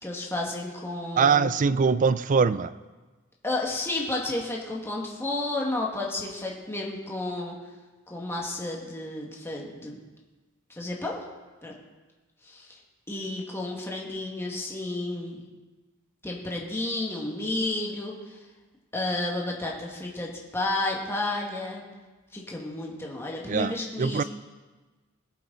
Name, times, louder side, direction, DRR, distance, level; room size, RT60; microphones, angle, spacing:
voice 1, 0.0-1.5 3.4-7.6 8.1-10.0 10.8-11.2 11.6-11.7 12.5-12.7 13.1-15.4 16.2-18.2 18.9-21.8 22.3-24.2, left 2 dB, 10° left, 2.0 m, -31 dB
voice 2, 1.2-2.7 23.5-24.2, right 5 dB, 40° right, 0.4 m, -23 dB
21.0 x 8.5 x 4.1 m
head